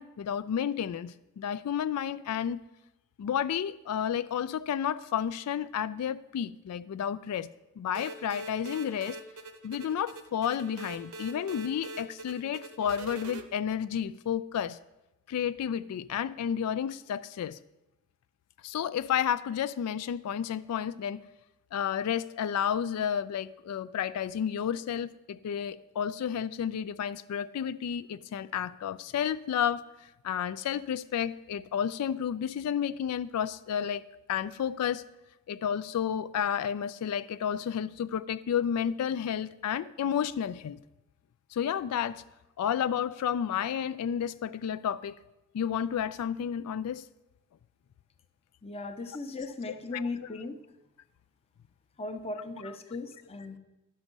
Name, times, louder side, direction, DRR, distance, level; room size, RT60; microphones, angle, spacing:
voice 1, 0.0-2.6 3.2-7.5 7.8-9.2 9.6-14.8 15.3-17.6 18.6-21.2 21.7-29.8 30.2-34.0 34.3-35.0 35.5-40.8 41.5-42.2 42.6-45.2 45.5-47.0 49.7-50.4 52.6-52.8, left 8 dB, 85° left, 15 dB, 0.3 m, -31 dB
sound 1, 7.9-13.4, right 2 dB, 85° right, 0.9 m, -43 dB
voice 2, 48.6-50.6 52.0-53.6, left 3 dB, 25° left, 7 dB, 0.7 m, -37 dB
11.5 x 6.1 x 5.3 m, 0.98 s
head